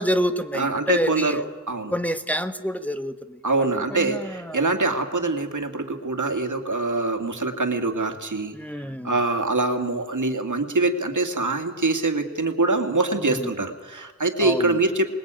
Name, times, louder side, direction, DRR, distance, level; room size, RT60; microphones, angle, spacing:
voice 1, 0.0-1.5 1.9-4.6 8.5-9.1 13.2-13.5 14.4-14.7, equal, 5° left, 8 dB, 1.4 m, -28 dB
voice 2, 0.5-1.9 3.4-8.5 9.0-15.1, right 3 dB, 85° right, 5 dB, 2.3 m, -24 dB
25.5 x 20.5 x 9.0 m, 1.4 s
wide cardioid pair, 55°, 29 cm